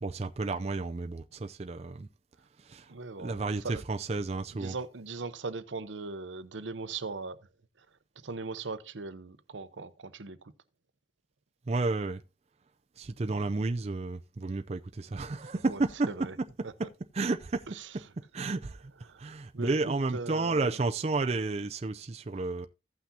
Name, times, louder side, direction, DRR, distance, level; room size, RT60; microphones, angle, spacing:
voice 1, 0.0-2.1 2.6-2.9 3.2-4.8 11.7-12.2 13.0-16.5 16.8-16.9 17.1-17.6 18.3-18.9 19.2-22.7, right 3 dB, 35° right, 0.4 m, -31 dB
voice 2, 2.9-3.8 4.5-7.5 7.8-7.9 8.2-10.5 15.7-16.4 16.6-16.7 17.7-17.9 19.1-20.8, right 3 dB, 90° right, 0.8 m, -40 dB
15.5 x 5.9 x 2.7 m
head